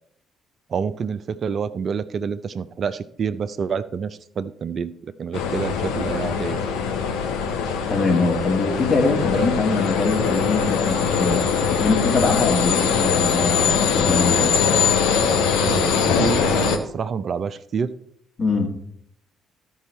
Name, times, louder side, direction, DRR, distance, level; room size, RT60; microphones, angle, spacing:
voice 1, 0.7-6.6 9.4-9.6 15.6-17.9, right 6 dB, 50° right, 13 dB, 0.5 m, -28 dB
sound 1, 5.3-16.8, left 6 dB, 75° left, 0.9 m, -21 dB
voice 2, 7.9-11.4 11.8-14.5 18.4-18.7, left 3 dB, 45° left, 2 dB, 2.1 m, -23 dB
13.0 x 5.5 x 4.3 m, 0.68 s
hypercardioid pair, 45°, 0 cm